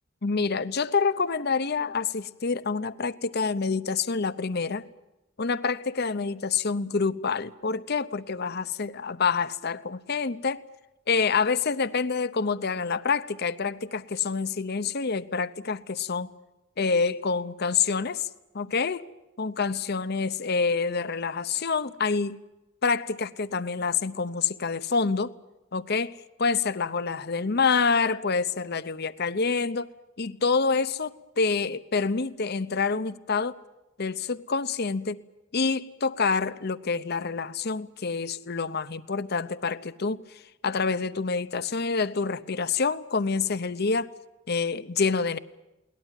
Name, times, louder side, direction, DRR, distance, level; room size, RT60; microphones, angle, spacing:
voice 1, 0.2-4.8 5.4-10.6 11.1-16.3 16.8-19.0 19.4-22.4 22.8-25.3 25.7-26.1 26.4-29.9 30.2-33.6 34.0-35.2 35.5-40.2 40.6-44.1 44.5-45.4, left 5 dB, 50° left, 0.8 m, -27 dB
22.0 x 19.0 x 9.1 m
head